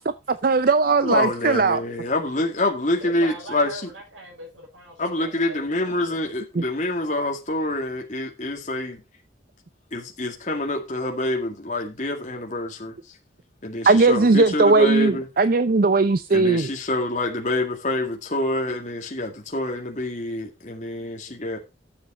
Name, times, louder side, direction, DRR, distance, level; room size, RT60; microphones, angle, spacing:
voice 1, 0.0-1.8 6.5-6.6 13.8-16.7, right 3 dB, 45° right, 0.5 m, -18 dB
voice 2, 1.0-3.8 5.0-9.0 9.9-12.9 13.6-15.3 16.3-21.6, left 2 dB, 40° left, 2.2 m, -26 dB
voice 3, 3.0-6.2, equal, 85° right, 6.2 m, -41 dB
12.0 x 7.4 x 4.4 m
head